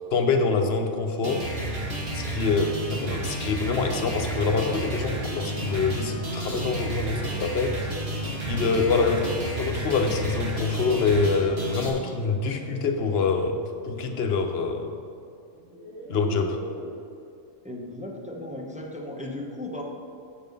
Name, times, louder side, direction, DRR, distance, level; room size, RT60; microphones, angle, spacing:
voice 1, 0.1-1.5 2.1-7.9 8.5-15.0 16.1-16.6, left 4 dB, 60° left, 4 dB, 1.0 m, -25 dB
sound 1, 1.2-11.9, right 1 dB, 55° right, 1.5 m, -31 dB
sound 2, 12.1-13.3 14.8-14.9 15.6-17.0, equal, 80° right, 2.1 m, -40 dB
voice 2, 17.6-19.8, left 1 dB, 5° right, -1 dB, 0.8 m, -36 dB
7.4 x 7.3 x 5.3 m, 2.4 s
omnidirectional pair, 1.3 m